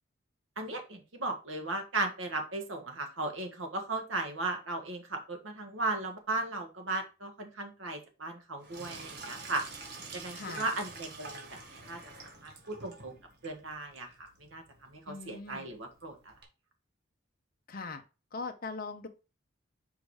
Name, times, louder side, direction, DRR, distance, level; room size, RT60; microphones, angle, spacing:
voice 1, 0.6-9.6 10.1-12.0 12.4-13.2 13.4-14.1 14.4-16.3, right 2 dB, 85° right, 4 dB, 1.7 m, -36 dB
Sink (filling or washing), 8.6-16.4, right 3 dB, 55° right, 1.8 m, -48 dB
voice 2, 10.3-10.7 15.1-15.7 17.7-18.0 18.3-19.1, left 4 dB, 50° left, 5 dB, 0.7 m, -40 dB
5.2 x 5.0 x 4.8 m, 0.31 s
head